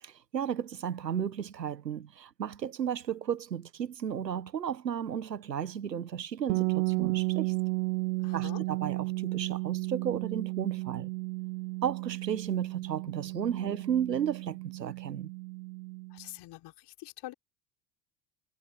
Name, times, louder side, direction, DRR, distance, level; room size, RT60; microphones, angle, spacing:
voice 1, 0.0-7.5 8.3-11.1 11.8-15.3, right 8 dB, 85° right, 1.5 m, -34 dB
sound 1, 6.5-16.2, right 26 dB, 65° right, 1.6 m, -33 dB
voice 2, 8.2-8.6 16.1-17.3, left 17 dB, 55° left, 5.0 m, -45 dB
figure-of-eight pair, 70°, 49 cm